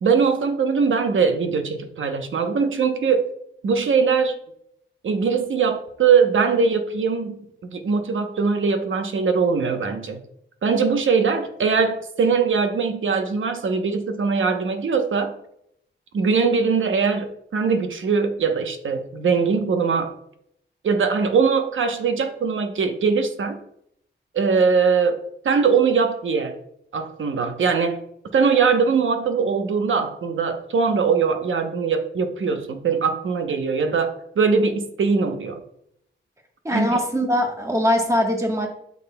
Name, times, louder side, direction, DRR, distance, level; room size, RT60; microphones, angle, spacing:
voice 1, 0.0-3.3 3.6-4.4 5.0-10.2 10.6-15.3 16.1-20.1 20.8-23.6 24.3-25.2 25.4-26.5 26.9-28.0 28.3-35.6 36.7-36.9, right 5 dB, 85° right, 6 dB, 0.9 m, -21 dB
voice 2, 36.6-38.7, equal, 15° right, 2 dB, 1.2 m, -21 dB
8.6 x 6.5 x 2.2 m, 0.73 s
wide cardioid pair, 140°, 20 cm